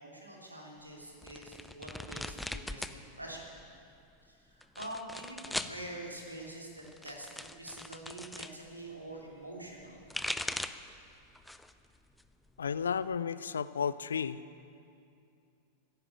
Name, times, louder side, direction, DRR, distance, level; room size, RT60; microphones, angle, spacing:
voice 1, 0.0-3.6 4.2-10.1, right 1 dB, 85° right, -1 dB, 3.1 m, -46 dB
sound 1, 1.2-3.0 3.3-3.9 4.6-5.8 6.8-8.5 9.8-10.9 11.3-11.8 12.2-13.1, left 1 dB, 5° left, 0.6 m, -40 dB
voice 2, 12.6-14.4, left 7 dB, 70° left, 16 dB, 0.5 m, -33 dB
15.0 x 11.0 x 8.5 m, 2.5 s
figure-of-eight pair, 90°, 0 cm